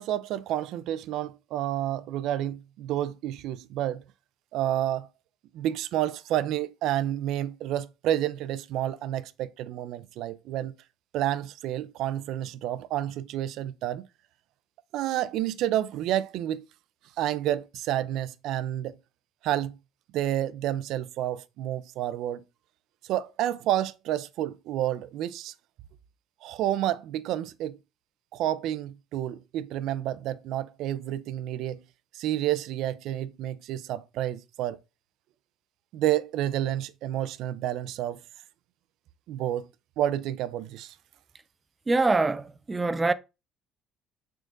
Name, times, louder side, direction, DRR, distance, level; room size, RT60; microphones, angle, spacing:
voice 1, 0.0-4.0 4.5-5.1 5.5-10.7 11.1-14.1 14.9-16.6 17.2-19.0 19.4-19.7 20.1-22.4 23.1-25.5 26.4-27.8 28.3-31.8 32.1-34.8 35.9-38.2 39.3-39.7 40.0-40.9, right 12 dB, 70° right, 0.6 m, -30 dB
voice 2, 41.9-43.1, right 3 dB, 15° right, 0.6 m, -24 dB
9.2 x 3.8 x 3.9 m
cardioid pair, 130°, 0 cm